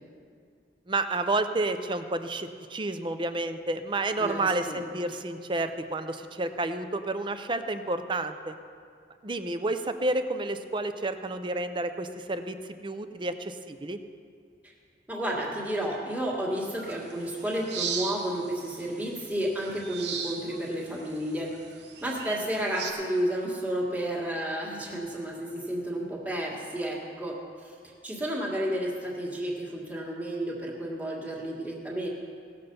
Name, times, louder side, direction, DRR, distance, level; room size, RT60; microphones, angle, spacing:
voice 1, 0.9-8.5 9.2-12.6 12.8-14.0, right 2 dB, 25° right, 9 dB, 0.6 m, -30 dB
voice 2, 4.2-4.8 15.1-21.5 22.0-27.4 27.6-27.7 28.0-32.1, right 1 dB, 10° right, -4 dB, 1.7 m, -31 dB
sound 1, 16.8-22.9, right 6 dB, 70° right, 1.1 m, -39 dB
18.0 x 6.8 x 5.4 m, 2.2 s
head